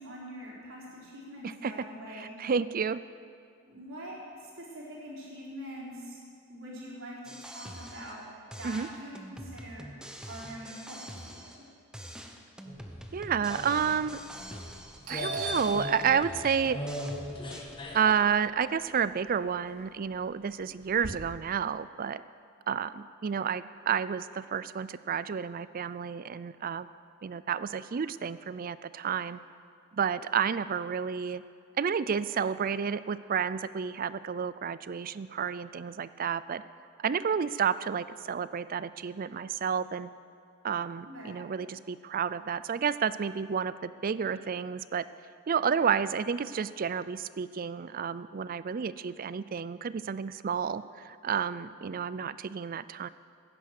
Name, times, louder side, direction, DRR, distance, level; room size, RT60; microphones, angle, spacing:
voice 1, 0.0-2.3 3.6-6.2 6.5-8.2 8.6-9.9 10.3-11.6 41.0-41.4, equal, 60° right, -5 dB, 4.4 m, -44 dB
voice 2, 2.1-3.0 8.6-8.9 13.1-14.2 15.1-16.8 17.9-22.2 22.7-26.9 27.2-29.4 29.9-31.4 31.8-36.6 37.0-40.1 40.6-45.0 45.5-53.1, right 7 dB, 40° right, 15 dB, 0.4 m, -30 dB
sound 1, 7.2-8.3 8.5-11.7 11.9-15.1 15.4-17.8, equal, 5° right, 0.8 m, -45 dB
sound 2, 12.7-18.1, equal, 20° left, 1.6 m, -40 dB
Doorbell, 14.6-14.8 15.1-19.2 19.6-21.1, equal, 80° right, 2.6 m, -39 dB
16.0 x 10.5 x 6.5 m, 2.3 s
head